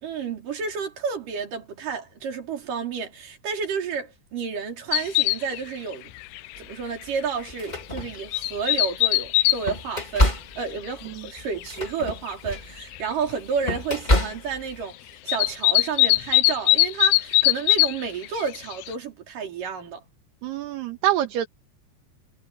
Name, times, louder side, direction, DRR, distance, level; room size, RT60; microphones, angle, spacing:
voice 1, 0.0-6.1 6.6-15.0 15.2-20.0, right 6 dB, 50° right, 5.3 m, -31 dB
sound 1, 4.9-5.6 5.9-6.0 6.4-6.6 7.0-7.1 8.0-9.6 10.3-10.4 11.6-11.7 12.3-12.4 12.6-13.0 15.3-18.0 18.2-18.9, left 18 dB, 80° left, 2.6 m, -20 dB
sound 2, 6.5-6.7 7.4-8.7 9.2-14.8, left 1 dB, 10° left, 2.4 m, -27 dB
voice 2, 20.4-21.5, right 12 dB, 70° right, 3.5 m, -25 dB
omnidirectional pair, 5.1 m